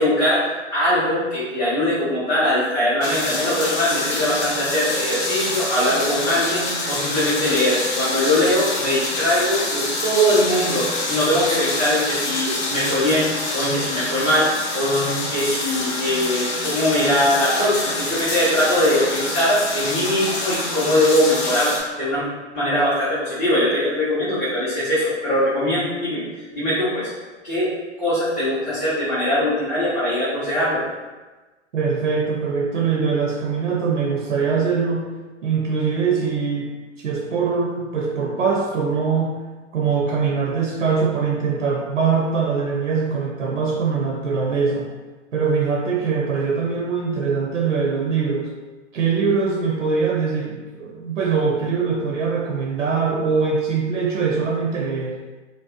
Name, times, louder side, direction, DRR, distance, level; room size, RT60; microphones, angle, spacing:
voice 1, 0.0-22.2 22.5-26.2 26.5-27.1 27.4-27.7 28.0-30.8, left 1 dB, 5° left, -13 dB, 0.4 m, -21 dB
sound 1, 3.0-21.8, left 2 dB, 60° left, 0.7 m, -26 dB
voice 2, 31.7-35.1 35.4-36.7 37.0-39.4 39.7-44.9 45.3-48.5 48.9-55.2, right 5 dB, 90° right, -2 dB, 0.5 m, -22 dB
2.6 x 2.1 x 2.3 m, 1.2 s
figure-of-eight pair, 120°, 37 cm